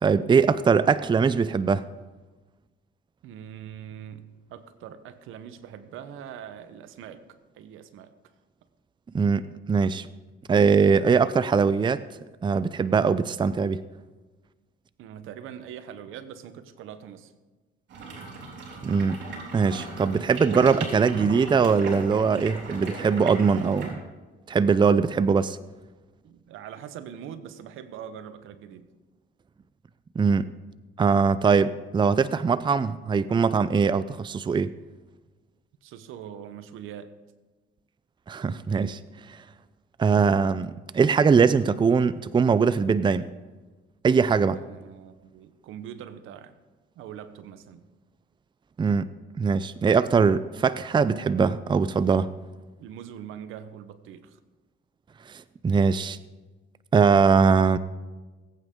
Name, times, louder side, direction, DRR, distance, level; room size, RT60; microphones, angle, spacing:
voice 1, 0.0-1.9 9.1-10.1 10.5-12.0 12.4-13.8 18.8-19.2 19.5-24.0 24.5-25.6 30.2-30.5 31.0-34.7 38.3-39.0 39.3-39.4 40.0-43.3 44.0-44.6 48.8-49.1 49.4-52.3 55.3-56.2 56.9-57.8, right 5 dB, 25° right, 0.5 m, -21 dB
voice 2, 3.2-8.1 15.0-17.3 26.2-28.9 35.8-37.1 44.5-46.6 47.0-47.9 52.8-54.4, right 9 dB, 80° right, 1.0 m, -42 dB
sound 1, 17.9-23.9, right 3 dB, 60° right, 4.1 m, -37 dB
20.0 x 9.0 x 3.7 m
cardioid pair, 85°, 20 cm